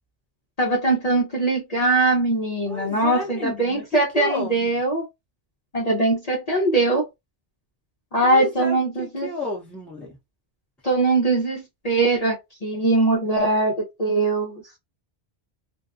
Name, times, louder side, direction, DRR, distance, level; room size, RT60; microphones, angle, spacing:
voice 1, 0.6-5.0 5.7-7.0 8.1-9.3 10.8-14.6, right 2 dB, 40° left, 0.7 m, -21 dB
voice 2, 2.6-4.8 8.2-10.2, left 1 dB, ahead, 0.7 m, -32 dB
2.6 x 2.1 x 2.5 m
omnidirectional pair, 1.1 m